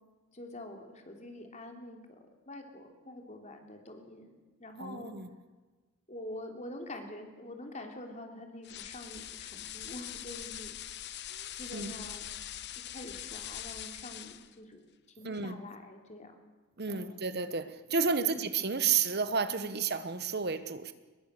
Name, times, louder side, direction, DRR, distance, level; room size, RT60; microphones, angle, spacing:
voice 1, 0.3-2.0 2.5-5.1 6.1-11.2 11.6-12.3 12.8-14.9 15.2-16.3 16.9-17.2 18.2-18.3 19.6-19.8, left 1 dB, 35° left, 4 dB, 3.3 m, -46 dB
voice 2, 4.8-5.3 11.3-11.5 11.7-11.9 15.2-15.6 16.8-20.9, right 5 dB, 50° right, 12 dB, 1.1 m, -31 dB
sound 1, 8.6-14.5, left 11 dB, 55° left, 0.9 m, -43 dB
24.0 x 21.5 x 6.7 m, 1.3 s
head